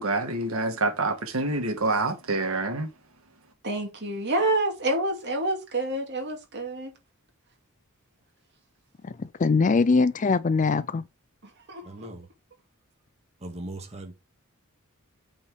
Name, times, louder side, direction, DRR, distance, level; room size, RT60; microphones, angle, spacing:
voice 1, 0.0-2.9, right 2 dB, 70° right, 1.8 m, -27 dB
voice 2, 3.6-6.9 11.7-12.1, right 2 dB, 50° right, 2.7 m, -28 dB
voice 3, 9.4-11.0, left 4 dB, 35° left, 0.4 m, -21 dB
voice 4, 11.8-12.3 13.4-14.1, right 1 dB, 30° right, 1.9 m, -39 dB
8.4 x 4.5 x 4.8 m
head